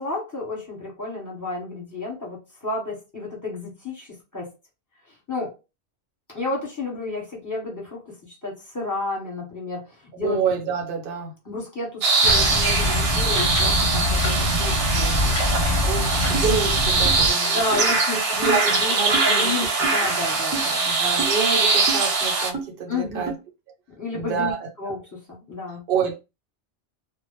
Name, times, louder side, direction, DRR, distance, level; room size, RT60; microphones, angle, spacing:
voice 1, 0.0-4.5 5.3-5.5 6.3-8.1 8.4-9.9 10.2-10.4 11.4-15.3 17.4-18.9 19.2-20.9 22.9-23.3 24.0-25.8, left 3 dB, 15° left, 0.9 m, -31 dB
voice 2, 10.2-11.3 15.8-17.9 18.4-19.5 20.8-23.3 24.1-24.9 25.9-26.2, right 5 dB, 60° right, 0.8 m, -27 dB
sound 1, 12.0-22.5, right 3 dB, 85° right, 0.9 m, -22 dB
sound 2, 12.2-17.3, left 1 dB, 55° left, 0.7 m, -24 dB
sound 3, 16.3-16.5 17.1-17.2 17.7-17.8 18.4-18.6 19.1-19.3 19.8-20.0 20.5-20.7 21.2-21.3 21.9-22.0 22.5-22.7 23.3-23.4, right 5 dB, 35° right, 0.3 m, -30 dB
2.1 x 2.0 x 3.0 m
omnidirectional pair, 1.2 m